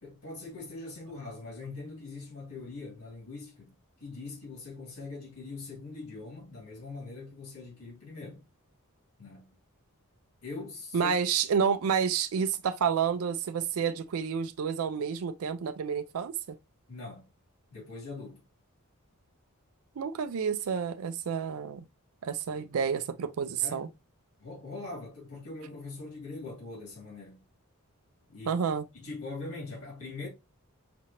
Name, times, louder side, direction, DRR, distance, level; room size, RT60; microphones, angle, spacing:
voice 1, 0.0-3.7 4.0-8.4 9.2-9.5 10.4-11.1 16.9-17.2 17.7-18.4 23.6-23.9 24.4-27.4 28.3-28.6 29.0-30.3, left 3 dB, 85° left, 3.0 m, -42 dB
voice 2, 10.9-16.6 20.0-21.9 22.2-23.9 28.5-28.9, right 7 dB, 75° right, 0.4 m, -29 dB
5.9 x 2.9 x 2.9 m
head